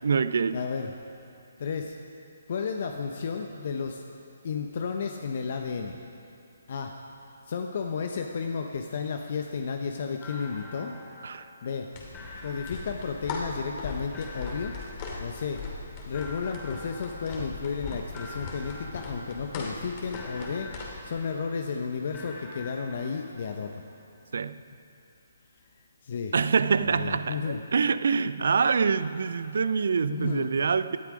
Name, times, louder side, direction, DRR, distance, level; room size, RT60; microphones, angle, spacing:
voice 1, 0.0-0.6 11.2-11.5 17.4-17.5 24.3-24.6 26.3-31.0, right 5 dB, 65° right, 14 dB, 0.5 m, -25 dB
voice 2, 0.5-0.9 1.6-2.0 2.5-4.0 4.4-6.0 6.7-6.9 7.5-11.0 11.6-11.9 12.4-14.8 15.2-15.6 16.1-20.7 21.0-23.8 26.0-26.3 26.8-27.6 30.1-30.5, left 5 dB, 55° left, 4 dB, 0.9 m, -32 dB
sound 1, 10.2-11.9 12.1-13.8 14.1-15.8 16.1-17.9 18.1-19.9 20.1-21.8 22.1-23.8, left 2 dB, 15° left, 3.2 m, -46 dB
sound 2, 11.9-21.1, left 4 dB, 35° left, 2.5 m, -39 dB
18.0 x 12.0 x 5.0 m, 2.7 s
figure-of-eight pair, 140°, 0 cm